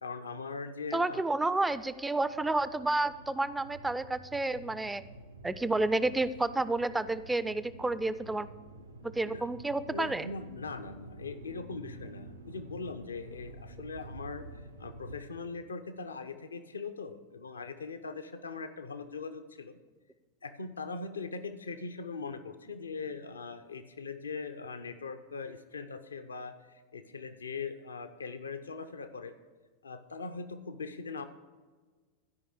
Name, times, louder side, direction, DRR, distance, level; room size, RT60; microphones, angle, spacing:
voice 1, 0.0-1.2 9.3-9.4 9.8-19.8 20.4-29.3 29.8-31.2, left 4 dB, 75° left, 9 dB, 0.6 m, -41 dB
voice 2, 0.9-5.0 5.4-8.5 9.0-10.3, right 2 dB, 10° right, 14 dB, 0.4 m, -30 dB
sound 1, 1.4-15.2, right 2 dB, 80° right, 0.8 m, -49 dB
12.5 x 5.4 x 6.5 m, 1.4 s
figure-of-eight pair, 90°, 0 cm